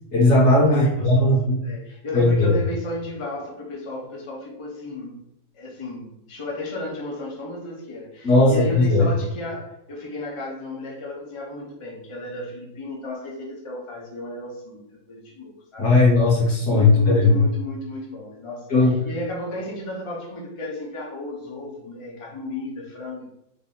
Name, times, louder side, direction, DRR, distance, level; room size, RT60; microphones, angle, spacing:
voice 1, 0.1-1.6 2.1-2.6 8.2-9.1 15.8-17.4 18.7-18.9, left 2 dB, 55° left, -7 dB, 1.6 m, -17 dB
voice 2, 0.7-5.2 5.5-15.9 16.6-23.3, left 2 dB, 35° left, -3 dB, 0.5 m, -34 dB
3.9 x 3.4 x 2.4 m, 0.81 s
omnidirectional pair, 1.4 m